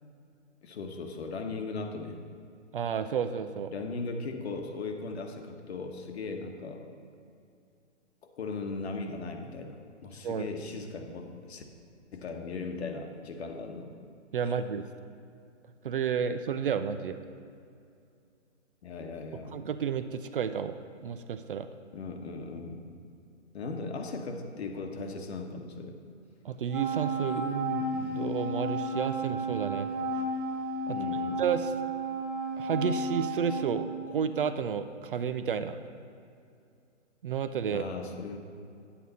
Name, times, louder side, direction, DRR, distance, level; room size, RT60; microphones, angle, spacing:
voice 1, 0.6-2.2 3.7-6.9 8.4-11.6 12.1-13.9 18.8-19.6 21.9-22.9 23.5-26.0 30.9-31.4 37.7-38.4, left 3 dB, 60° left, 5 dB, 1.2 m, -38 dB
voice 2, 2.7-3.7 10.2-10.5 14.3-14.9 15.8-17.2 19.5-20.7 21.0-21.7 26.4-29.9 30.9-31.0 31.4-31.7 32.6-35.8 37.2-37.9, right 7 dB, 50° right, 11 dB, 0.4 m, -31 dB
Wind instrument woodwind instrument, 26.7-34.3, right 2 dB, 5° right, 1.3 m, -33 dB
9.2 x 8.5 x 4.1 m, 2.5 s
hypercardioid pair, 155°, 37 cm